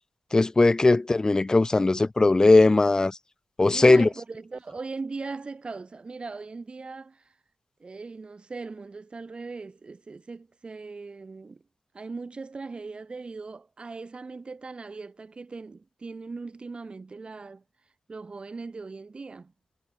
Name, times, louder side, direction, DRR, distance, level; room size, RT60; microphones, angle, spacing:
voice 1, 0.3-3.2 3.6-4.1, left 2 dB, 25° left, 1.3 m, -19 dB
voice 2, 3.7-7.3 7.8-11.6 11.9-17.6 18.1-19.5, right 4 dB, 40° right, 4.2 m, -39 dB
cardioid pair, 75°, 3 cm